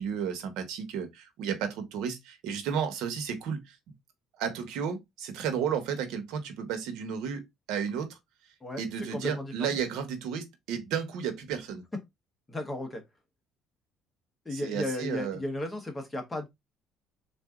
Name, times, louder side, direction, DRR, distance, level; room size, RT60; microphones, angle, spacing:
voice 1, 0.0-3.8 4.4-8.2 8.8-11.8 14.5-15.4, right 7 dB, 80° right, 1.0 m, -33 dB
voice 2, 9.1-9.8 12.5-13.0 14.4-16.5, left 1 dB, 15° left, 1.0 m, -34 dB
3.8 x 2.6 x 3.6 m
cardioid pair, 155°, 0 cm